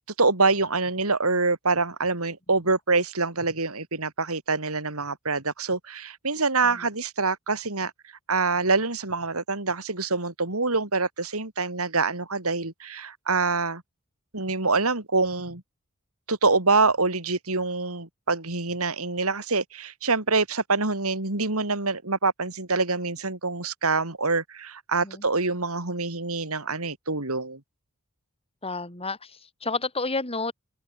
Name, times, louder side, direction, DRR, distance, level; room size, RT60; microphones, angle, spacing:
voice 1, 0.2-7.9 8.3-13.8 14.3-15.6 16.3-27.6, right 3 dB, 80° right, 4.1 m, -25 dB
voice 2, 28.6-30.5, left 3 dB, 25° left, 7.2 m, -31 dB
open air
head